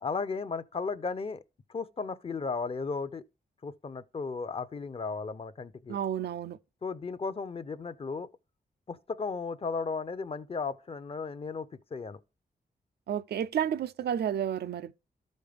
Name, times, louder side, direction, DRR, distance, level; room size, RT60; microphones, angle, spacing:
voice 1, 0.0-1.4 1.7-3.2 3.6-6.0 6.8-8.3 8.9-12.2, left 4 dB, 35° left, 0.5 m, -35 dB
voice 2, 5.9-6.6 13.1-14.9, right 9 dB, 85° right, 0.4 m, -31 dB
12.5 x 5.2 x 3.4 m
wide cardioid pair, 115°, 17 cm